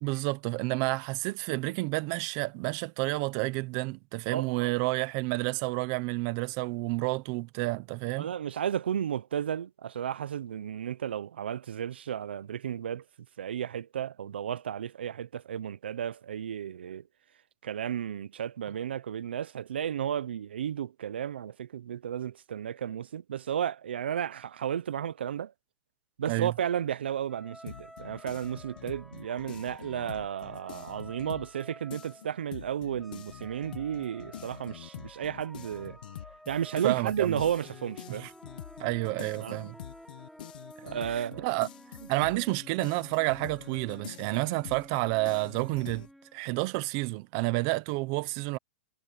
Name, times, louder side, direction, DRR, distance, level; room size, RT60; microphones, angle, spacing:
voice 1, 0.0-8.3 26.3-26.5 36.8-37.4 38.1-38.3 38.8-39.8 41.1-41.7 42.1-46.1 46.3-48.6, right 23 dB, 30° right, 0.9 m, -30 dB
voice 2, 4.3-4.7 8.2-13.0 13.4-17.0 17.6-25.5 26.2-36.0 36.5-38.2 39.4-39.6 40.8-41.6, right 9 dB, 85° right, 0.7 m, -33 dB
sound 1, 27.3-32.5 33.0-46.7, equal, ahead, 7.0 m, -52 dB
sound 2, 27.7-31.6 31.9-46.1, left 11 dB, 55° left, 1.1 m, -46 dB
hypercardioid pair, 175°, 6 cm